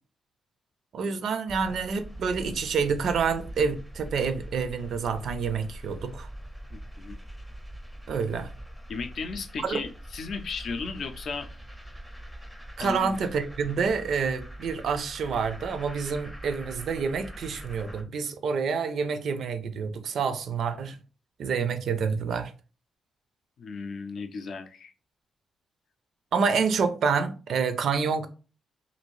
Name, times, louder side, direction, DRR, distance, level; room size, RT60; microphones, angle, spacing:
voice 1, 0.9-6.3 8.1-8.5 9.6-9.8 12.8-21.0 21.4-22.5 26.3-28.3, right 5 dB, 65° right, 0.4 m, -28 dB
sound 1, 1.5-18.0, right 1 dB, 5° right, 0.5 m, -43 dB
voice 2, 6.7-7.2 8.9-11.5 12.8-13.2 23.6-24.9, left 4 dB, 60° left, 0.4 m, -35 dB
2.6 x 2.5 x 3.1 m
cardioid pair, 115°, 0 cm